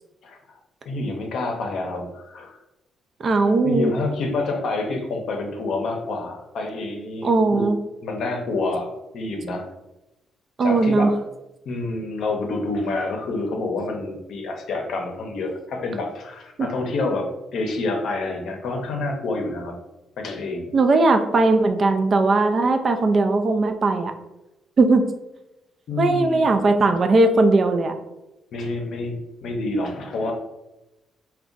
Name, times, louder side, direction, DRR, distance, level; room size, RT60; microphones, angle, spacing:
voice 1, 0.9-2.6 3.4-7.6 8.0-9.7 10.6-11.1 11.7-19.7 20.2-20.7 25.9-26.4 28.5-30.3, left 2 dB, 70° left, 3 dB, 0.6 m, -28 dB
voice 2, 3.2-3.9 7.2-7.8 10.6-11.1 16.6-16.7 20.7-24.1 24.8-25.0 26.0-27.9, right 3 dB, 45° right, 7 dB, 0.4 m, -18 dB
2.5 x 2.2 x 3.7 m, 0.96 s
cardioid pair, 90°, 0 cm